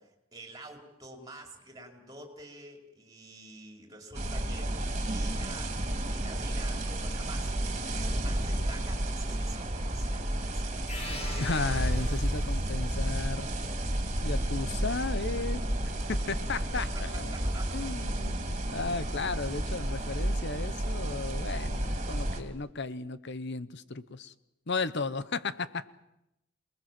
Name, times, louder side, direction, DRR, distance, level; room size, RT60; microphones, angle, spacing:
voice 1, 0.0-4.7 5.1-11.1 17.3-18.3, right 2 dB, 15° right, 3 dB, 4.3 m, -48 dB
sound 1, 4.1-22.4, right 1 dB, 35° right, 3.2 m, -31 dB
sound 2, 9.3-12.5 12.8-13.4 13.7-14.3 14.6-14.7 14.9-15.2 15.5-15.6 15.8-16.0 16.4-16.5 16.7-16.9 17.2-17.3 17.6-17.8 18.1-18.2 18.5-18.7 19.0-19.1, equal, 10° left, 5.4 m, -56 dB
sound 3, 10.9-12.8, left 2 dB, 30° left, 6.4 m, -42 dB
voice 2, 11.4-13.5 14.2-17.3 17.7-24.3 24.7-25.9, left 4 dB, 55° left, 15 dB, 0.9 m, -35 dB
26.5 x 20.5 x 7.6 m, 0.87 s
head